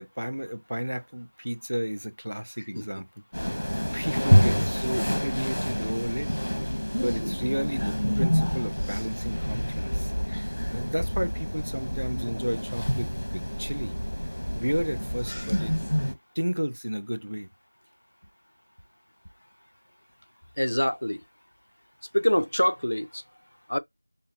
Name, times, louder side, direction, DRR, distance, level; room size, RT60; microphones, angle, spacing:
voice 1, 0.0-3.1 3.4-3.6 3.9-6.3 6.9-13.9 14.6-15.7 16.3-17.5, equal, 60° right, 0.7 m, -32 dB
sound 1, 3.3-16.1, equal, 85° left, 1.2 m, -27 dB
voice 2, 20.6-21.2 22.1-23.2 23.7-23.8, equal, 55° left, 0.5 m, -25 dB
5.4 x 2.2 x 2.6 m
figure-of-eight pair, 180°, 0 cm